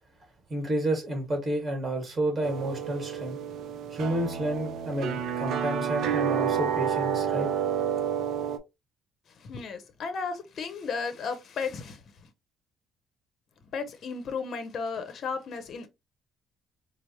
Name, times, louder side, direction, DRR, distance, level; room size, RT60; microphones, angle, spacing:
voice 1, 0.5-3.4 3.9-7.5, right 1 dB, 30° right, 1.6 m, -30 dB
sound 1, 2.4-8.6, right 8 dB, 65° right, 0.5 m, -29 dB
voice 2, 9.3-12.3 13.7-15.9, left 5 dB, 55° left, 0.7 m, -34 dB
4.5 x 2.0 x 2.8 m
cardioid pair, 90°, 0 cm